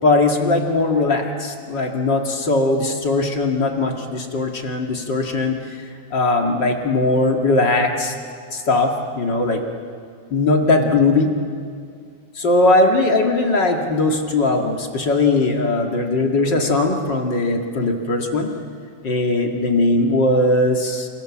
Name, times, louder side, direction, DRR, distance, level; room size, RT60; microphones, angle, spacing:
voice 1, 0.0-5.6 6.1-8.1 8.5-9.6 10.3-11.3 12.3-18.5 19.0-21.1, left 2 dB, 35° left, 2 dB, 2.0 m, -19 dB
29.0 x 28.0 x 7.3 m, 2.3 s
omnidirectional pair, 4.7 m